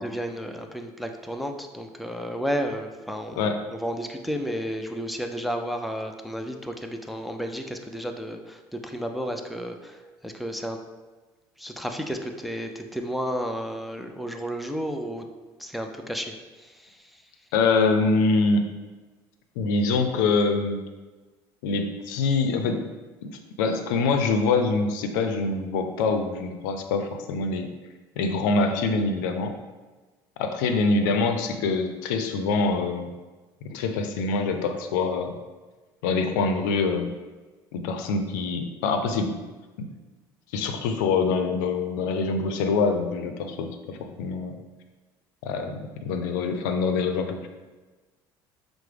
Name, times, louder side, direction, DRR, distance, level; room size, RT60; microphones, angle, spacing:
voice 1, 0.0-10.8 11.6-15.3 15.6-17.2, equal, ahead, 4 dB, 0.4 m, -32 dB
voice 2, 17.5-18.7 19.6-20.8 21.6-22.8 23.2-23.3 23.6-27.7 28.2-29.5 30.4-33.1 33.6-35.4 36.0-37.1 37.7-39.3 39.8-39.9 40.5-44.6 45.4-47.5, left 4 dB, 90° left, 6 dB, 0.4 m, -25 dB
5.7 x 2.0 x 3.3 m, 1.3 s
supercardioid pair, 95°, 10 cm